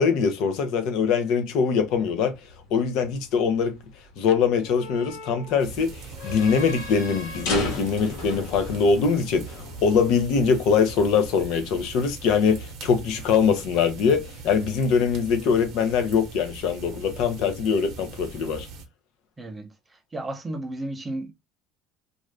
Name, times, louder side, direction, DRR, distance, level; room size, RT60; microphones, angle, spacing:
voice 1, 0.0-2.4 2.7-3.8 4.2-18.7, left 6 dB, 55° left, 0.7 m, -23 dB
sound 1, 1.8-10.1, left 3 dB, 90° left, 1.3 m, -37 dB
sound 2, 5.6-18.8, right 4 dB, 50° right, 0.8 m, -41 dB
voice 2, 19.4-19.7 20.1-21.3, right 1 dB, 10° right, 0.5 m, -33 dB
2.6 x 2.4 x 3.2 m
cardioid pair, 165°, 0 cm